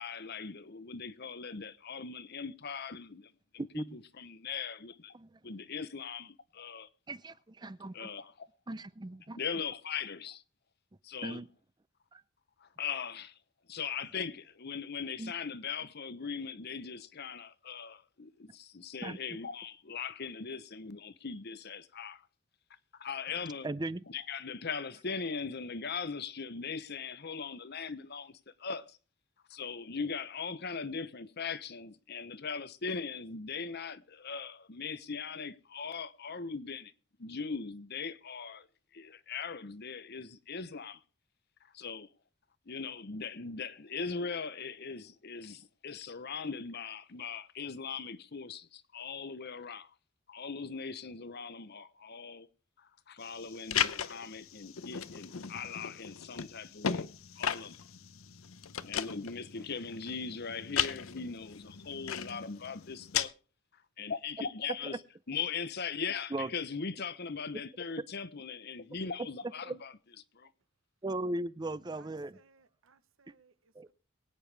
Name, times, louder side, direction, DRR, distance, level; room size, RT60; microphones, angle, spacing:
voice 1, 0.0-5.1 5.4-6.9 7.9-8.5 9.3-10.4 11.0-11.4 12.6-13.4 13.7-22.3 22.9-23.7 24.1-29.0 29.5-36.9 37.2-38.7 38.9-41.0 41.6-42.1 42.7-49.9 50.3-52.5 52.8-57.0 57.4-57.8 58.8-63.3 63.7-65.0 65.3-69.9 70.3-70.5, left 5 dB, 50° left, 0.9 m, -40 dB
voice 2, 7.1-8.1 8.7-9.4 11.2-11.5 12.1-12.2 15.2-15.3 19.0-19.2 23.6-24.0 64.9-65.0 66.3-66.5 69.6-69.7 71.0-72.4 73.8-73.9, right 2 dB, 20° right, 0.5 m, -37 dB
sound 1, 53.2-63.3, left 8 dB, 80° left, 0.8 m, -37 dB
voice 3, 71.9-73.9, right 4 dB, 70° right, 0.9 m, -66 dB
23.0 x 9.1 x 3.4 m
head